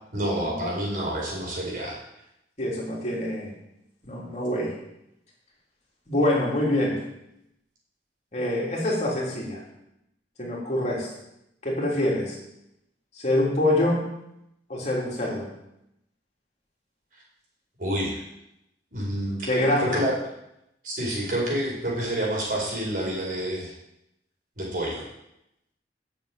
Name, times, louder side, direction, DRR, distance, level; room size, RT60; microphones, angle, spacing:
voice 1, 0.1-1.9 17.8-18.2 18.9-20.1 20.8-23.7 24.6-25.0, right 1 dB, 50° right, -3 dB, 4.5 m, -28 dB
voice 2, 2.6-3.5 4.0-4.7 6.1-7.0 8.3-9.6 10.4-11.1 11.6-12.4 13.1-14.0 14.7-15.5 19.4-20.0, left 1 dB, 40° left, -4 dB, 3.4 m, -25 dB
9.6 x 6.9 x 8.7 m, 0.82 s
head